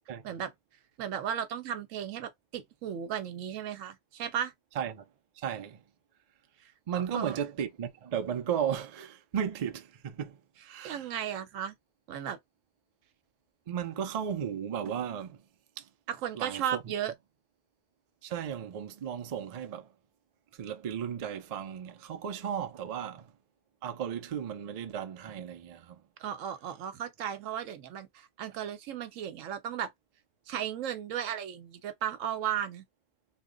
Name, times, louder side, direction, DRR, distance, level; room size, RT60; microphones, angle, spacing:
voice 1, 1.0-4.5 7.1-7.4 10.8-11.8 12.1-12.4 16.1-17.1 26.2-29.9 30.5-32.8, right 9 dB, 85° right, 1.0 m, -35 dB
voice 2, 5.4-5.8 6.9-10.4 10.6-11.1 13.7-15.4 15.8-15.9 16.4-16.9 18.2-19.9 20.5-23.3 23.8-26.0, right 8 dB, 55° right, 0.4 m, -35 dB
3.0 x 2.1 x 3.7 m
omnidirectional pair, 1.3 m